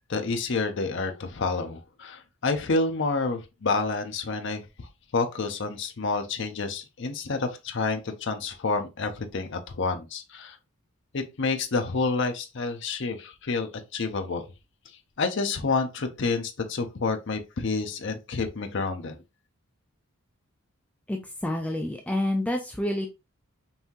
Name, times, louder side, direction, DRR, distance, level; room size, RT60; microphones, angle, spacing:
voice 1, 0.1-4.6 5.1-10.6 11.1-14.5 15.2-19.2, left 3 dB, 55° left, 0.6 m, -29 dB
voice 2, 21.1-23.1, left 1 dB, 5° left, 0.4 m, -28 dB
5.4 x 2.7 x 2.9 m
head